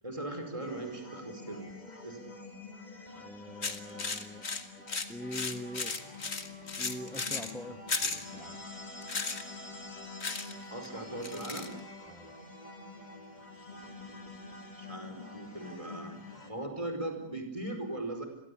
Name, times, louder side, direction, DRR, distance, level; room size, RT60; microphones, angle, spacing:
voice 1, 0.0-1.6 2.0-2.2 10.7-11.7 14.8-16.2 16.5-18.3, right 1 dB, 20° right, 5 dB, 5.1 m, -39 dB
sound 1, 0.6-16.5, left 2 dB, 30° left, 3.3 m, -47 dB
voice 2, 3.1-4.5 4.8-6.0 6.8-8.6 12.1-12.3, left 1 dB, ahead, 8 dB, 1.3 m, -44 dB
sound 2, 3.6-7.5 7.9-8.2 9.0-9.4 10.2-10.5 10.8-10.9 11.2-11.7, left 4 dB, 45° left, 2.1 m, -35 dB
29.5 x 23.0 x 8.5 m, 0.75 s
omnidirectional pair, 1.6 m